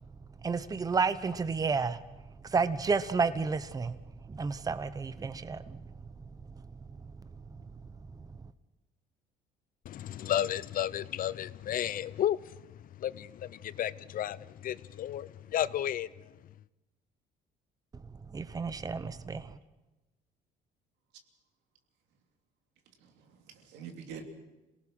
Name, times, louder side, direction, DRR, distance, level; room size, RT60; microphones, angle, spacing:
voice 1, 0.4-2.0 2.4-4.0 4.2-5.9 6.5-6.7 7.0-7.1 7.6-7.7 18.3-19.6, right 4 dB, 20° right, 0.9 m, -31 dB
voice 2, 9.9-12.6 13.0-16.1, left 11 dB, 55° left, 0.7 m, -33 dB
voice 3, 23.0-24.2, right 6 dB, 90° right, 2.9 m, -46 dB
27.0 x 18.5 x 6.2 m
cardioid pair, 110°, 17 cm